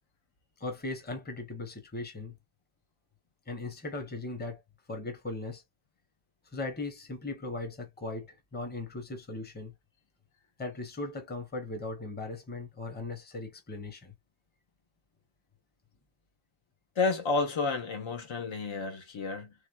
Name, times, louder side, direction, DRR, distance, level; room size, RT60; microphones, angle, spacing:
voice 1, 0.6-2.4 3.5-4.6 4.9-5.6 6.5-8.3 8.5-9.7 10.6-14.1, left 2 dB, 20° left, 0.9 m, -38 dB
voice 2, 16.9-19.5, left 4 dB, 80° left, 1.3 m, -30 dB
3.4 x 3.2 x 2.3 m
wide cardioid pair, 180°, 46 cm